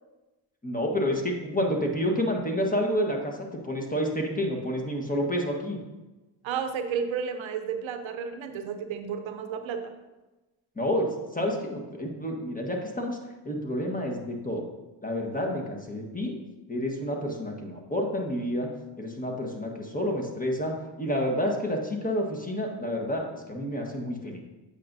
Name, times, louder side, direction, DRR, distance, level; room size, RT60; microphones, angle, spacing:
voice 1, 0.6-3.4 3.6-5.8 10.8-13.2 13.4-14.7 15.0-16.4 16.7-18.7 19.0-20.7 21.0-24.4, equal, 15° left, 1 dB, 1.4 m, -29 dB
voice 2, 6.4-9.9, right 7 dB, 70° right, 7 dB, 0.7 m, -32 dB
8.4 x 5.1 x 2.7 m, 1.1 s
supercardioid pair, 50°, 49 cm